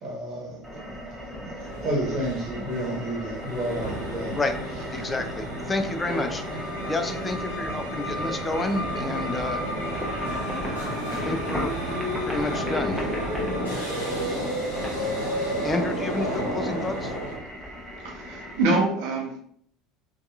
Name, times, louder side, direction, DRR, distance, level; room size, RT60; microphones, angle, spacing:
voice 1, 0.0-4.4, right 1 dB, 45° right, -2 dB, 1.0 m, -31 dB
sound 1, 0.6-18.6, equal, 5° right, 0.7 m, -38 dB
sound 2, 1.6-17.4, equal, 90° left, 0.7 m, -31 dB
voice 2, 4.9-9.6 11.1-11.7 12.2-13.0 14.2-14.4 15.6-17.1, left 2 dB, 20° left, 6 dB, 0.3 m, -30 dB
voice 3, 17.6-19.4, right 2 dB, 65° right, 0 dB, 0.6 m, -26 dB
2.7 x 2.3 x 2.4 m, 0.66 s
figure-of-eight pair, 65°, 0 cm